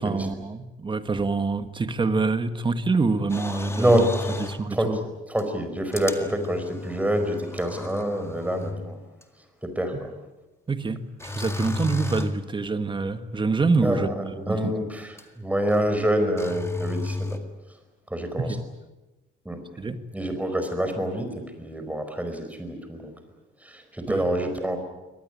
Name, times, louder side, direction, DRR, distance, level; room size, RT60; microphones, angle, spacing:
voice 1, 0.0-4.1 4.4-5.0 10.7-14.7 18.4-18.6 19.8-20.0 24.1-24.2, right 4 dB, 25° right, 10 dB, 1.6 m, -26 dB
sound 1, 3.3-4.7 5.4-5.5 5.9-8.9 9.2-9.3 11.2-12.5 15.2-15.3 15.7-16.0 16.4-17.4, left 2 dB, 15° left, 1.9 m, -33 dB
voice 2, 3.8-4.3 4.7-5.0 5.3-9.0 9.7-10.1 13.8-14.0 14.5-17.4 18.1-18.5 19.4-19.6 20.1-21.3 21.6-23.1 23.6-24.8, right 1 dB, 5° right, 7 dB, 4.8 m, -26 dB
24.0 x 19.0 x 10.0 m, 1.1 s
cardioid pair, 125°, 19 cm